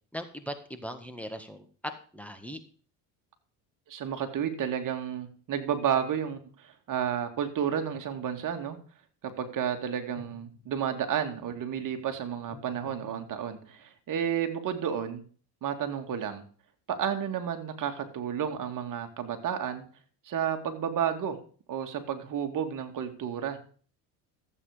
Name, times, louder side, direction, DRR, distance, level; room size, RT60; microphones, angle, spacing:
voice 1, 0.1-1.6 2.1-2.6, equal, 5° left, 7 dB, 1.7 m, -39 dB
voice 2, 3.9-8.8 9.2-15.2 15.6-16.4 16.9-19.8 20.2-21.4 21.7-23.6, right 8 dB, 45° right, 6 dB, 2.4 m, -31 dB
sound 1, 7.9-8.5 10.1-11.2 12.5-13.8, left 8 dB, 55° left, 5.1 m, -51 dB
14.0 x 8.5 x 5.1 m, 0.42 s
supercardioid pair, 100°, 42 cm